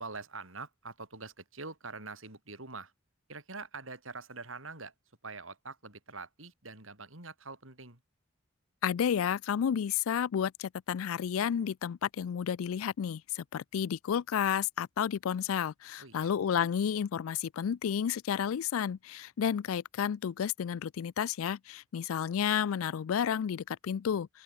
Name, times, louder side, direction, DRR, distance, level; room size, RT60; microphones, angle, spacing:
voice 1, 0.0-2.9 3.3-4.9 5.2-8.0 16.0-16.3, right 3 dB, 75° right, 5.4 m, -44 dB
voice 2, 8.8-24.3, left 8 dB, 85° left, 0.4 m, -31 dB
open air
head